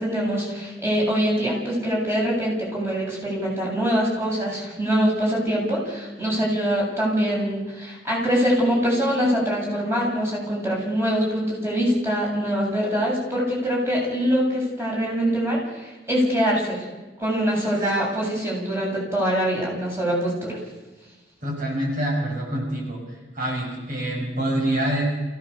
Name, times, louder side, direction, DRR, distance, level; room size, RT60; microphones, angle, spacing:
voice 1, 0.0-16.9 17.2-20.6, equal, 15° right, -3 dB, 7.8 m, -24 dB
voice 2, 21.4-23.0 23.3-25.0, right 1 dB, 50° right, -1 dB, 6.5 m, -26 dB
28.5 x 17.0 x 7.0 m, 1.2 s
head